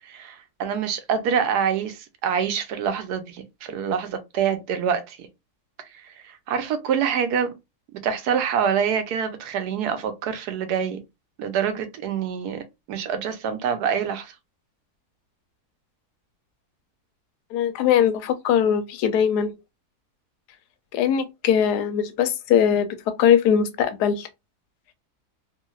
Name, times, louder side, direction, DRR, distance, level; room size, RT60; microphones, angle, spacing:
voice 1, 0.1-5.3 6.0-7.5 8.0-11.0 11.4-12.6 12.9-14.3, right 7 dB, 85° right, 1.2 m, -26 dB
voice 2, 17.5-19.5 20.9-22.9 23.2-24.3, left 8 dB, 85° left, 1.1 m, -20 dB
3.1 x 2.7 x 2.2 m
omnidirectional pair, 1.7 m